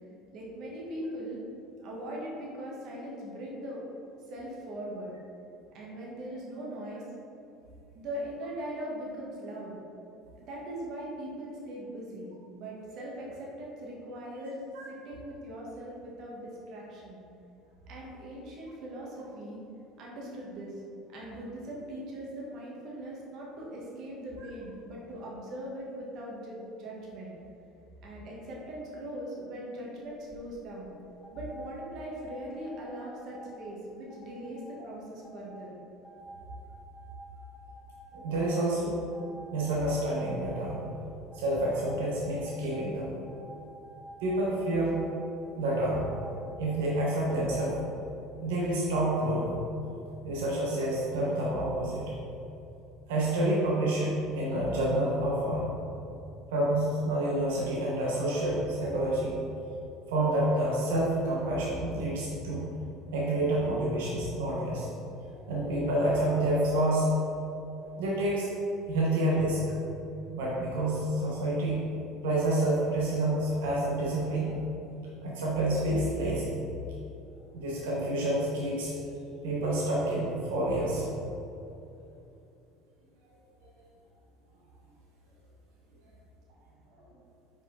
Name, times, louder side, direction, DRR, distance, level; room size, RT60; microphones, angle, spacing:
voice 1, 0.3-1.4 1.8-3.8 4.2-5.2 5.7-7.0 7.9-9.8 10.4-14.6 14.9-17.2 17.9-19.6 20.0-20.8 21.1-27.3 28.0-30.9 31.3-35.8, right 1 dB, 60° right, -4 dB, 1.4 m, -40 dB
sound 1, 30.0-30.4 31.2-33.6 34.1-34.8 35.2-35.6 36.0-38.7 39.1-41.0 41.3-42.0 42.5-42.8 43.3-45.5 46.0-47.8, right 1 dB, 10° left, 1.0 m, -50 dB
voice 2, 38.2-39.0 39.5-40.8 41.3-43.1 44.2-44.9 45.5-46.1 46.6-47.8 48.4-49.6 50.2-52.0 53.1-55.7 56.5-59.3 60.1-62.7 63.1-64.9 65.5-67.1 67.8-68.5 68.9-69.6 70.3-71.8 72.2-74.6 75.2-76.5 77.5-78.9 79.4-81.0, right 1 dB, 85° right, -5 dB, 1.1 m, -28 dB
5.0 x 4.9 x 3.9 m, 2.8 s
supercardioid pair, 90°, 0 cm